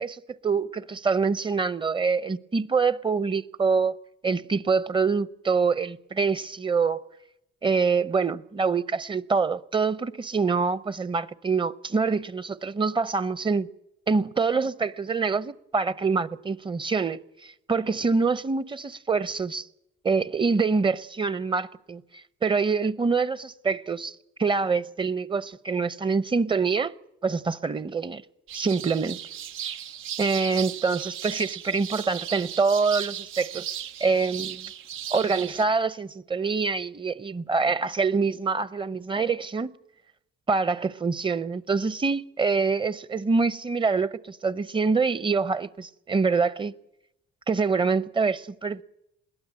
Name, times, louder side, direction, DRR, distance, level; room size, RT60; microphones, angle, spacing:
voice 1, 0.0-3.9 4.2-7.0 7.6-13.7 14.1-19.7 20.0-22.0 22.4-26.9 27.2-28.2 28.5-29.2 29.6-29.8 30.2-34.7 35.1-39.7 40.5-46.7 47.5-48.8, right 4 dB, 25° right, 0.7 m, -25 dB
sound 1, 28.5-35.6, right 10 dB, 85° right, 0.7 m, -36 dB
21.5 x 16.0 x 7.7 m
cardioid pair, 90°, 20 cm